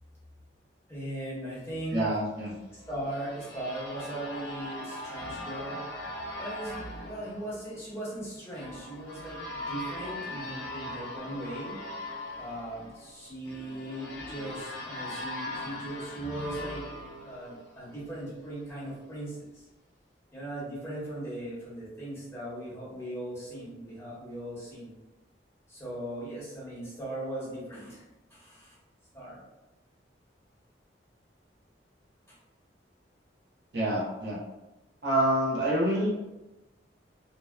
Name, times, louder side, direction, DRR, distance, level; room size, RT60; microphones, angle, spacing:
voice 1, 0.9-2.0 2.7-5.8 6.4-11.7 12.4-16.8 17.2-19.7 20.3-24.9 25.7-28.0 28.3-28.8 29.1-29.4 32.3-32.4, right 1 dB, 15° left, -9 dB, 1.0 m, -39 dB
voice 2, 1.9-2.5 33.7-34.4 35.0-36.1, right 1 dB, 70° right, -5 dB, 0.7 m, -27 dB
sound 1, 2.5-18.1, left 1 dB, 75° left, 0.7 m, -40 dB
2.7 x 2.0 x 2.2 m, 1.0 s
head